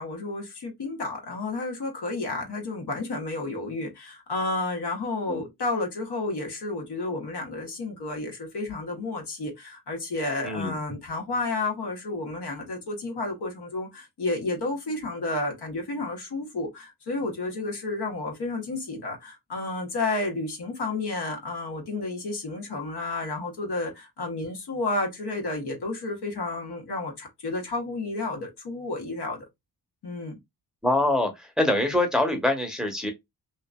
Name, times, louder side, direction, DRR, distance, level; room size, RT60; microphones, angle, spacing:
voice 1, 0.0-29.4 30.0-30.3, left 2 dB, 75° left, 1.1 m, -31 dB
voice 2, 10.4-10.8 30.8-31.3 31.6-33.1, left 1 dB, ahead, 0.8 m, -24 dB
2.8 x 2.5 x 2.2 m
cardioid pair, 75°, 40 cm